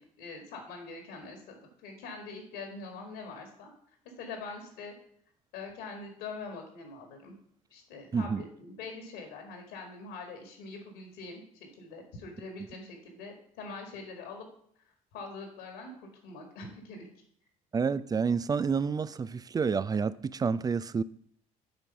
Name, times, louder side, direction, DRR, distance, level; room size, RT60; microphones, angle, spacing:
voice 1, 0.0-3.7 4.2-4.9 5.5-7.3 7.7-14.5 15.1-17.1, left 3 dB, 70° left, 2.0 m, -44 dB
voice 2, 17.7-21.0, right 5 dB, 20° right, 0.4 m, -29 dB
7.5 x 4.6 x 5.8 m
figure-of-eight pair, 55°, 18 cm